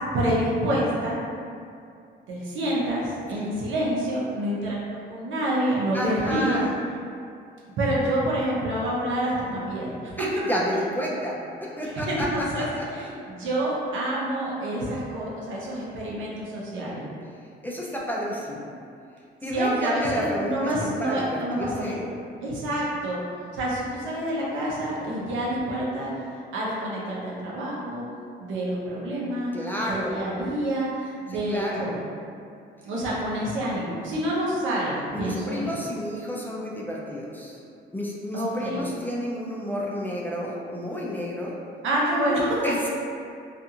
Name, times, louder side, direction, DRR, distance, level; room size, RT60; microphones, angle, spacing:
voice 1, 0.1-1.2 2.3-6.6 7.8-10.3 11.8-17.0 19.5-22.0 22.4-23.2 23.5-26.1 26.5-28.0 28.4-29.5 29.8-32.0 32.8-35.8 38.3-38.8 41.8-42.6, right 1 dB, 75° right, -6 dB, 0.7 m, -27 dB
voice 2, 5.9-6.7 10.2-12.3 12.6-12.9 17.6-18.7 19.4-22.0 29.5-30.3 31.3-31.9 35.1-37.6 37.9-41.5 42.6-42.9, equal, 10° left, -4 dB, 0.4 m, -30 dB
2.5 x 2.4 x 2.7 m, 2.4 s
cardioid pair, 90°, 20 cm